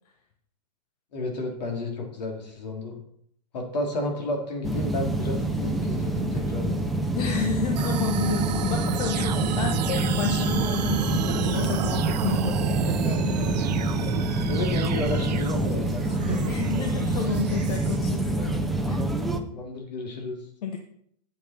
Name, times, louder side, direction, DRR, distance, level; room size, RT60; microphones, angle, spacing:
voice 1, 1.1-2.9 3.5-6.8 14.5-16.6 19.5-20.4, left 2 dB, 80° left, 2 dB, 3.1 m, -32 dB
sound 1, 4.6-19.4, right 1 dB, ahead, 0.6 m, -26 dB
voice 2, 7.2-13.2 16.5-19.0 20.6-20.8, left 5 dB, 65° left, 4 dB, 1.2 m, -31 dB
sound 2, 7.7-18.0, right 9 dB, 75° right, 0.8 m, -31 dB
8.7 x 7.0 x 4.4 m, 0.68 s
hypercardioid pair, 150°, 21 cm